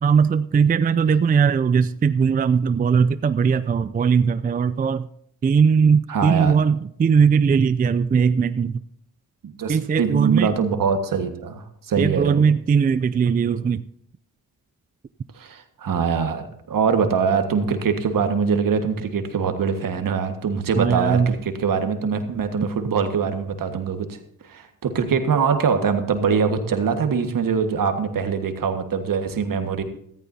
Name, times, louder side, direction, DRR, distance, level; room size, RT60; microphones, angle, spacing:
voice 1, 0.0-5.1 5.4-8.8 9.7-10.5 12.0-13.9 20.8-21.3, right 6 dB, 25° right, 14 dB, 0.4 m, -19 dB
voice 2, 6.1-6.5 9.4-12.4 15.3-24.2 24.4-29.8, right 6 dB, 65° right, 7 dB, 1.7 m, -23 dB
14.5 x 14.0 x 2.8 m, 0.71 s
cardioid pair, 65°, 36 cm